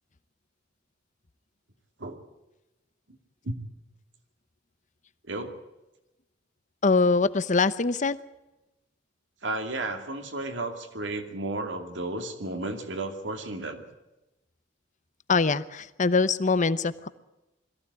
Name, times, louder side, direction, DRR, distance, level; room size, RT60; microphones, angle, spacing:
voice 1, 6.8-8.2 15.3-17.1, left 4 dB, 40° left, 15 dB, 0.8 m, -23 dB
voice 2, 9.4-13.8, right 2 dB, 70° right, 6 dB, 2.4 m, -33 dB
21.5 x 15.0 x 9.7 m, 0.99 s
head